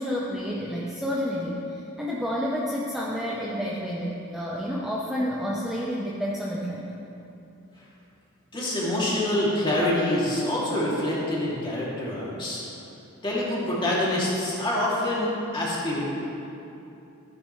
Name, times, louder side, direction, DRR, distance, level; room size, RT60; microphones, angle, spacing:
voice 1, 0.0-6.9, equal, ahead, -5 dB, 0.8 m, -30 dB
voice 2, 8.5-12.6 13.2-16.0, left 1 dB, 25° left, -7 dB, 2.7 m, -26 dB
14.0 x 9.7 x 3.2 m, 2.8 s
head